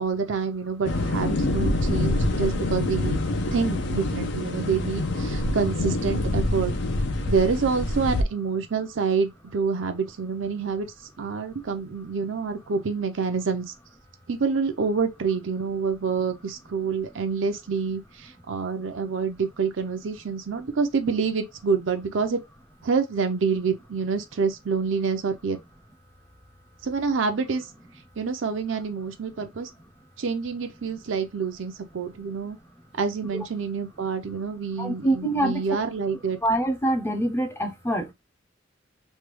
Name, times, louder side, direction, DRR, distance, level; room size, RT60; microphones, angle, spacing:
voice 1, 0.0-3.2 3.5-6.7 7.3-10.9 11.2-13.7 14.3-22.4 22.8-25.6 26.8-27.7 28.2-29.7 30.2-32.6 33.0-36.4, right 5 dB, 75° right, 0.6 m, -27 dB
sound 1, 0.8-8.2, left 2 dB, 60° left, 0.6 m, -26 dB
voice 2, 34.8-35.5 36.4-38.1, right 1 dB, 15° left, 0.5 m, -25 dB
3.2 x 2.3 x 3.0 m
head